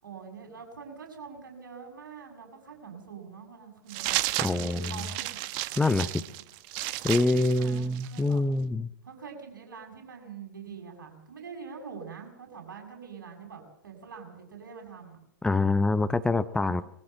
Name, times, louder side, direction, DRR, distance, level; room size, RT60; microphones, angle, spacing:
voice 1, 0.0-5.3 5.7-6.3 7.4-8.4 9.0-15.2 16.6-16.8, right 6 dB, 70° right, 2 dB, 6.9 m, -45 dB
sound 1, 3.9-8.3, right 16 dB, 45° right, 1.0 m, -33 dB
voice 2, 4.4-4.9 5.8-6.1 7.0-8.9 15.4-16.8, left 2 dB, 5° left, 13 dB, 0.7 m, -25 dB
22.0 x 15.0 x 7.9 m, 0.75 s
figure-of-eight pair, 100°, 11 cm